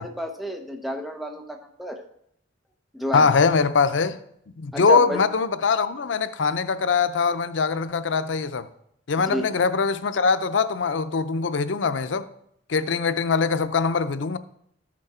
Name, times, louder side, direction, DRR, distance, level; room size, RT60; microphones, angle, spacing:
voice 1, 0.0-2.0 2.9-3.3 4.7-5.2 9.3-9.6, equal, ahead, 0.9 m, -31 dB
voice 2, 3.1-4.2 4.6-8.7 9.1-12.3 12.7-14.4, left 5 dB, 90° left, 0.6 m, -22 dB
13.5 x 6.1 x 4.3 m
head